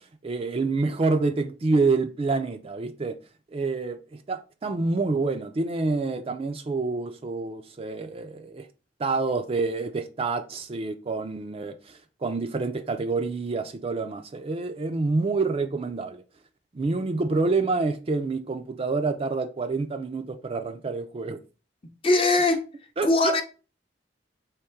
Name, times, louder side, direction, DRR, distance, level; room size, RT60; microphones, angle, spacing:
voice 1, 0.0-3.2 3.5-8.7 9.0-16.2 16.7-21.4 23.0-23.3, right 3 dB, 30° right, 0.4 m, -27 dB
voice 2, 22.0-22.6 23.0-23.4, left 2 dB, 30° left, 0.6 m, -20 dB
3.6 x 3.0 x 4.4 m
head